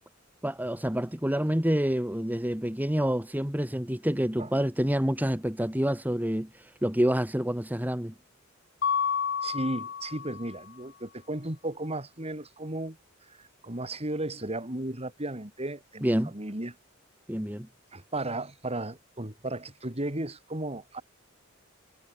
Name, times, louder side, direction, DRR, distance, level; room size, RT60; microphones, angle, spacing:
voice 1, 0.4-8.1 16.0-16.3 17.3-17.7, equal, 10° right, 2.0 m, -28 dB
Mallet percussion, 8.8-10.6, left 7 dB, 55° left, 1.7 m, -30 dB
voice 2, 9.4-13.0 13.3-13.4 13.6-16.8 17.9-21.0, right 1 dB, 30° right, 3.9 m, -35 dB
head